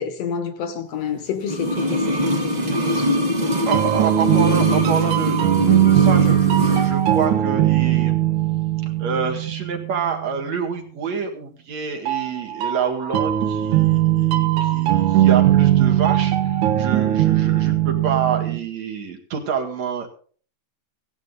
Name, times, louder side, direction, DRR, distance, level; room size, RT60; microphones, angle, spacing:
voice 1, 0.0-2.0 2.4-3.2, left 7 dB, 65° left, 2.0 m, -29 dB
sound 1, 1.4-6.9 7.2-7.3, left 1 dB, 35° right, 0.6 m, -23 dB
sound 2, 3.5-10.2 12.1-18.6, right 12 dB, 85° right, 2.5 m, -19 dB
voice 2, 3.7-8.1 9.0-20.1, right 6 dB, 70° right, 3.1 m, -27 dB
16.0 x 10.5 x 3.9 m
omnidirectional pair, 3.3 m